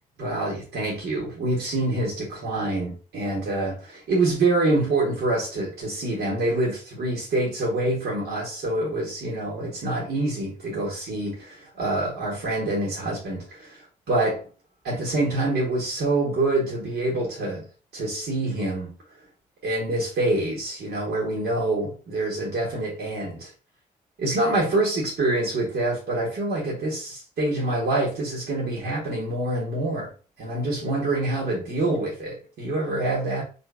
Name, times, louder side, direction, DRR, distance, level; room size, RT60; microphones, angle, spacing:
voice 1, 0.2-14.4 14.8-17.6 17.9-18.9 19.6-23.5 24.2-30.1 30.4-33.4, right 2 dB, 65° right, 1.5 m, -26 dB
3.7 x 2.7 x 3.6 m
hypercardioid pair, 40°, 19 cm